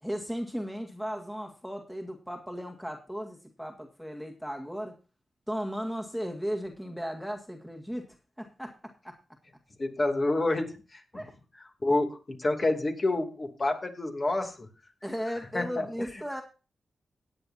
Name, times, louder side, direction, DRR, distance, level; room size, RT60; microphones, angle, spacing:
voice 1, 0.0-5.0 5.5-9.2 11.1-11.3 15.0-16.4, equal, ahead, 3 dB, 2.0 m, -36 dB
voice 2, 9.8-11.0 11.8-14.7 15.5-15.9, left 2 dB, 40° left, 3 dB, 2.9 m, -28 dB
17.5 x 9.1 x 2.8 m, 0.32 s
cardioid pair, 60°, 0 cm